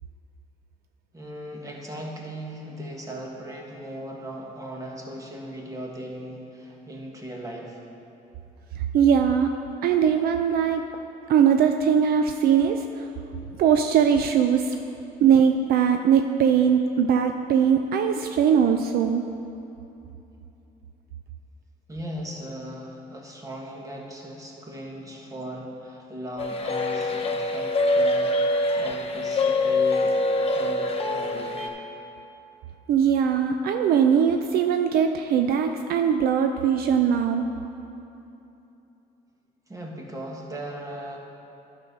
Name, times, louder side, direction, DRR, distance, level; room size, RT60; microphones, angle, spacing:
voice 1, 1.1-7.8 21.9-28.4 28.7-30.2 30.4-31.7 39.7-41.2, right 1 dB, 20° right, -1 dB, 1.6 m, -38 dB
voice 2, 8.8-9.5 9.8-10.8 11.3-13.1 13.6-14.8 15.2-19.2 32.9-37.4, right 7 dB, 65° right, 6 dB, 0.5 m, -21 dB
sound 1, 26.4-31.7, left 2 dB, 35° left, 0.9 m, -24 dB
11.0 x 6.3 x 5.3 m, 2.9 s
cardioid pair, 110°, 17 cm